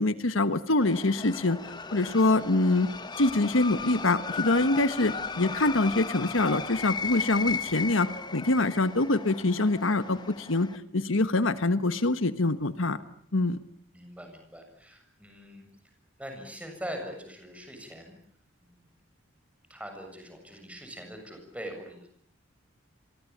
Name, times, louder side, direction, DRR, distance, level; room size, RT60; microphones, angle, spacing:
voice 1, 0.0-1.6 1.9-2.9 3.2-13.0 13.3-13.6, left 2 dB, 70° left, 12 dB, 1.3 m, -25 dB
sound 1, 0.8-10.8, left 5 dB, 20° left, 1.1 m, -36 dB
voice 2, 13.9-15.6 16.2-18.2 18.6-18.9 19.7-22.1, equal, 5° right, 4 dB, 7.4 m, -42 dB
29.0 x 23.0 x 8.7 m, 0.63 s
head